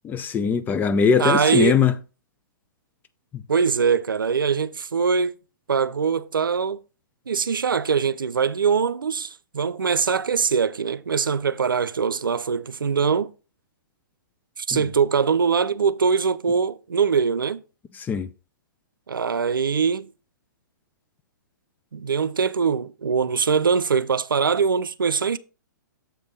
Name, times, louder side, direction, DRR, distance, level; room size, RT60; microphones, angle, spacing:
voice 1, 0.0-1.9 3.3-3.4 14.7-14.8 18.1-18.3, left 6 dB, 15° left, 0.5 m, -21 dB
voice 2, 1.2-1.8 3.5-5.3 5.7-6.8 7.3-13.3 14.6-17.6 19.1-20.1 21.9-25.4, right 6 dB, 85° right, 0.5 m, -22 dB
7.4 x 3.5 x 5.4 m
hypercardioid pair, 125°, 11 cm